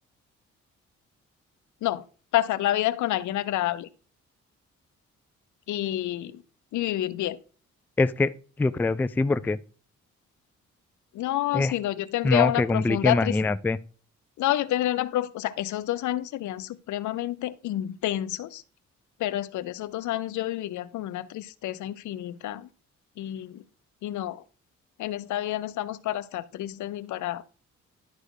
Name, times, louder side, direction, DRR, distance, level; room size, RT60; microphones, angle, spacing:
voice 1, 2.3-3.9 5.7-6.4 6.7-7.4 11.1-13.4 14.4-18.6 19.2-22.7 23.2-23.6 24.0-24.4 25.0-27.4, left 14 dB, 75° left, 0.7 m, -29 dB
voice 2, 8.0-8.3 8.6-9.6 11.5-11.7 12.2-13.8, left 3 dB, 5° left, 0.3 m, -23 dB
11.0 x 4.3 x 4.9 m
cardioid pair, 90°, 30 cm